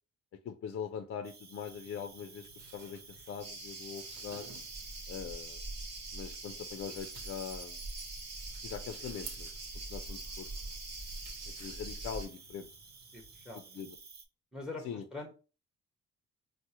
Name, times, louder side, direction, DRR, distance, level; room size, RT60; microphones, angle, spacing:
voice 1, 0.4-4.5 5.1-5.6 6.1-7.8 8.6-9.5 9.9-10.5 11.5-12.7 13.7-14.0 14.8-15.0, left 7 dB, 50° left, 7 dB, 0.4 m, -42 dB
Cricket, 1.2-14.2, right 4 dB, 35° right, 0.6 m, -54 dB
sound 1, 1.7-13.5, right 4 dB, 90° right, 0.9 m, -56 dB
sound 2, 3.4-12.3, right 2 dB, 55° right, 1.1 m, -43 dB
voice 2, 13.1-13.8 14.5-15.3, left 3 dB, 5° right, 4 dB, 0.8 m, -44 dB
4.5 x 2.1 x 2.8 m, 0.34 s
cardioid pair, 90°, 30 cm